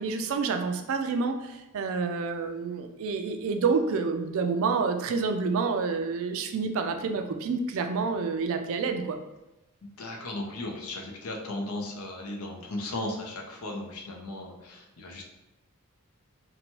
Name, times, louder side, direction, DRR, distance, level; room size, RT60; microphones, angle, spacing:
voice 1, 0.0-9.2, right 4 dB, 65° right, 6 dB, 0.3 m, -28 dB
voice 2, 9.8-15.2, left 1 dB, 80° left, 0 dB, 0.6 m, -36 dB
2.9 x 2.2 x 2.9 m, 1.0 s
head